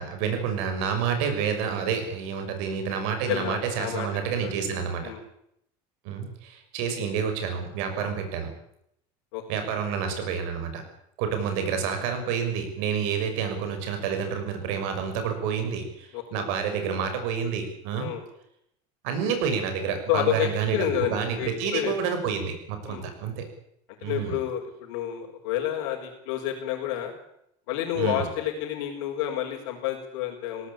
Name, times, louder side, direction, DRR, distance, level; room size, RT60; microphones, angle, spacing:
voice 1, 0.0-5.0 6.0-8.5 9.5-10.8 11.2-18.1 19.0-23.4 24.0-24.4 27.9-28.3, right 7 dB, 70° right, 6 dB, 6.3 m, -29 dB
voice 2, 3.3-4.6 5.0-5.2 8.0-8.1 9.3-9.4 11.4-11.5 16.1-16.4 18.0-18.2 20.1-21.9 22.9-23.1 24.0-27.1 27.7-30.7, left 11 dB, 80° left, -3 dB, 5.1 m, -30 dB
20.0 x 18.0 x 8.8 m, 0.74 s
cardioid pair, 175°, 15 cm